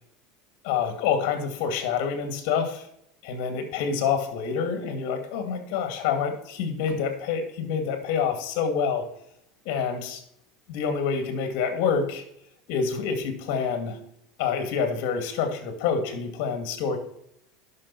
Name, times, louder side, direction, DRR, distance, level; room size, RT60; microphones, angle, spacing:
voice 1, 0.6-2.9 3.2-9.1 9.6-10.2 10.7-12.2 12.7-14.0 14.4-17.0, left 6 dB, 65° left, 7 dB, 2.4 m, -27 dB
11.0 x 6.5 x 4.4 m, 0.72 s
supercardioid pair, 115°, 0 cm